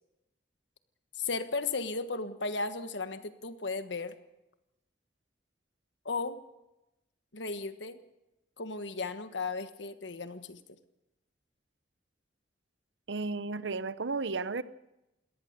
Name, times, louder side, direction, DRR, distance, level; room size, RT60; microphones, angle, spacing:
voice 1, 1.2-4.1 6.0-6.4 7.3-8.0 8.6-10.6, left 3 dB, 75° left, 10 dB, 1.4 m, -35 dB
voice 2, 13.1-14.6, right 3 dB, 80° right, 15 dB, 0.8 m, -33 dB
21.5 x 18.5 x 6.8 m, 0.94 s
head